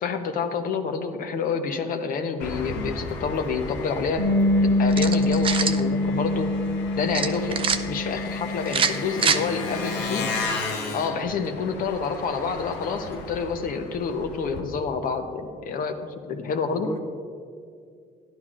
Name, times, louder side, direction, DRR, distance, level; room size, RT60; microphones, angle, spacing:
voice 1, 0.0-4.2 4.6-6.5 6.9-7.6 7.9-10.3 10.9-16.0 16.3-16.9, left 5 dB, 55° left, 7 dB, 0.8 m, -28 dB
Engine, 2.4-14.6, left 3 dB, 85° left, 1.0 m, -35 dB
Bass guitar, 4.2-10.4, left 2 dB, 90° right, 1.3 m, -25 dB
sound 1, 4.9-5.8 7.1-7.8 8.7-9.4, right 6 dB, 30° right, 0.4 m, -24 dB
voice 2, 10.0-10.3 16.3-17.0, left 3 dB, 20° left, 5 dB, 0.5 m, -38 dB
11.5 x 10.5 x 2.5 m, 2.2 s
cardioid pair, 110°, 17 cm